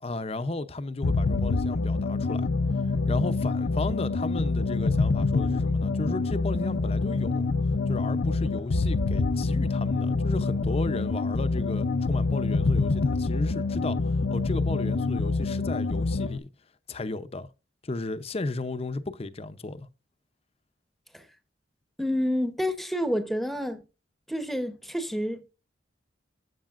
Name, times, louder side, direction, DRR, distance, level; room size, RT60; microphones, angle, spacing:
voice 1, 0.0-2.5 2.9-7.5 7.9-16.5 16.9-17.5 17.8-19.9, left 2 dB, 35° left, 0.6 m, -34 dB
sound 1, 1.0-16.4, left 3 dB, 75° left, 0.6 m, -26 dB
voice 2, 22.0-23.8 24.3-25.5, equal, ahead, 0.9 m, -29 dB
13.0 x 8.1 x 2.5 m
head